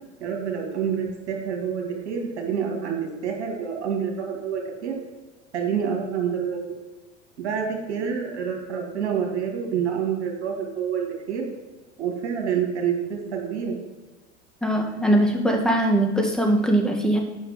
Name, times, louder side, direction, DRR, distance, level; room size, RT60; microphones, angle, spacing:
voice 1, 0.2-3.0 3.2-5.0 5.5-6.7 7.4-11.5 12.0-13.8, right 7 dB, 80° right, 2 dB, 2.1 m, -27 dB
voice 2, 14.6-17.2, right 1 dB, ahead, 1 dB, 2.0 m, -21 dB
9.3 x 5.9 x 5.1 m, 1.1 s
hypercardioid pair, 70°, 34 cm